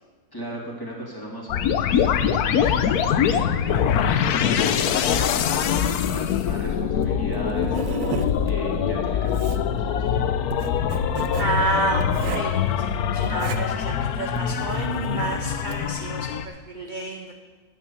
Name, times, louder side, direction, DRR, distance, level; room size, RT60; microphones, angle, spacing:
voice 1, 0.3-10.4, equal, 15° left, -4 dB, 2.6 m, -37 dB
sound 1, 1.5-16.5, left 8 dB, 80° left, 1.2 m, -23 dB
Writing, 7.0-15.9, right 7 dB, 65° right, 1.1 m, -35 dB
voice 2, 11.4-12.1 12.3-17.3, right 2 dB, 40° right, 3 dB, 0.7 m, -30 dB
9.7 x 8.5 x 7.1 m, 1.4 s
omnidirectional pair, 1.6 m